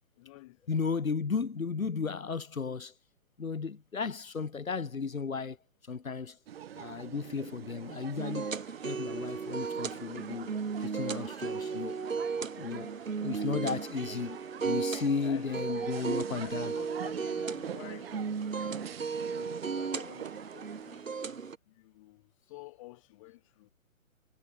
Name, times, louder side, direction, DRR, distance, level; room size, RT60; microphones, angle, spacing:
voice 1, 0.2-0.8 15.1-18.9 19.3-21.2 21.7-23.7, left 20 dB, 25° left, 1.1 m, -51 dB
voice 2, 0.7-2.9 3.4-5.6 5.9-6.4 6.7-12.0 12.6-12.9 13.2-14.4 14.6-16.7, left 5 dB, 80° left, 1.0 m, -34 dB
sound 1, 6.5-21.0, right 10 dB, 45° right, 4.2 m, -46 dB
sound 2, 8.2-21.6, right 5 dB, 70° right, 1.6 m, -35 dB
figure-of-eight pair, 125°, 41 cm